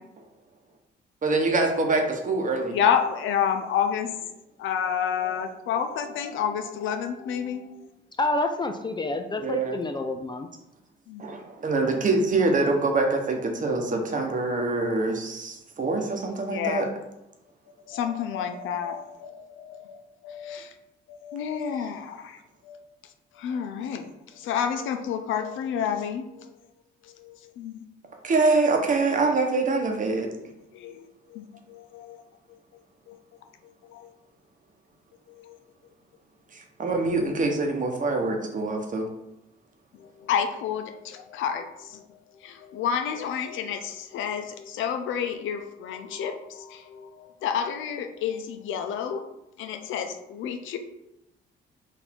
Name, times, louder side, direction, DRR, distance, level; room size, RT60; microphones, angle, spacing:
voice 1, 1.2-2.8 9.4-9.8 11.2-16.9 28.2-30.3 36.5-39.1, right 3 dB, 40° right, 3 dB, 0.9 m, -25 dB
voice 2, 2.7-4.1 4.6-7.6 11.1-11.2 16.5-16.8 17.9-19.9 20.2-20.7 21.1-22.4 22.7-22.8 23.4-24.1 24.4-26.5 27.2-27.8 30.7-31.0 31.3-31.4 31.7-32.2 33.1-33.2 33.9-34.1 35.3-35.4 40.2-42.0 42.4-49.2 49.6-50.8, left 8 dB, 80° left, 7 dB, 0.5 m, -29 dB
voice 3, 8.2-10.5, left 2 dB, 25° left, 5 dB, 0.3 m, -28 dB
4.1 x 2.6 x 4.3 m, 0.88 s
cardioid pair, 90°, 20 cm